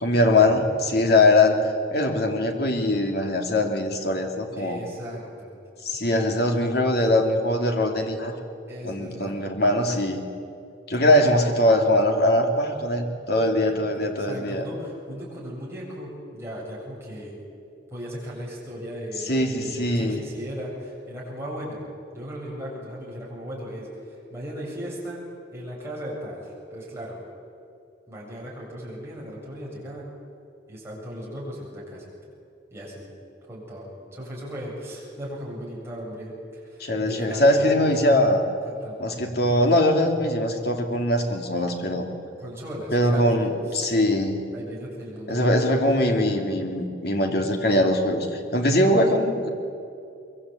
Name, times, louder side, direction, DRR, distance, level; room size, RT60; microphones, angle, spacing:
voice 1, 0.0-1.6 1.9-4.8 5.8-8.4 8.8-10.2 10.9-14.7 19.3-20.2 36.8-38.5 39.0-42.1 42.9-43.5 43.7-44.4 45.3-49.5, left 1 dB, 55° left, 3 dB, 2.9 m, -21 dB
voice 2, 4.6-5.6 8.7-9.4 13.6-17.4 17.9-21.8 22.1-25.2 25.5-27.2 28.1-30.1 30.7-32.0 32.7-33.1 33.5-36.3 36.6-37.8 38.7-39.0 42.4-43.9 44.5-45.6, equal, 15° right, -5 dB, 7.6 m, -37 dB
23.5 x 23.0 x 8.5 m, 2.6 s
head